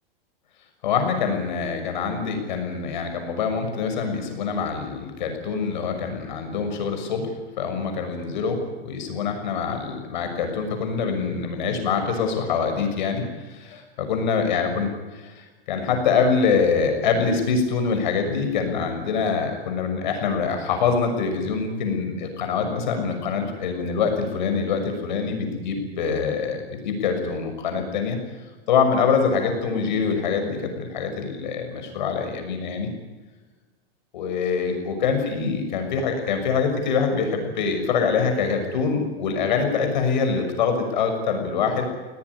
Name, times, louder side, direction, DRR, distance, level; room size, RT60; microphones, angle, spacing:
voice 1, 0.8-7.3 7.6-8.6 8.8-28.2 28.7-32.9 34.1-41.9, left 5 dB, 50° left, 5 dB, 6.2 m, -24 dB
21.5 x 18.5 x 9.8 m, 1.3 s
supercardioid pair, 180°, 29 cm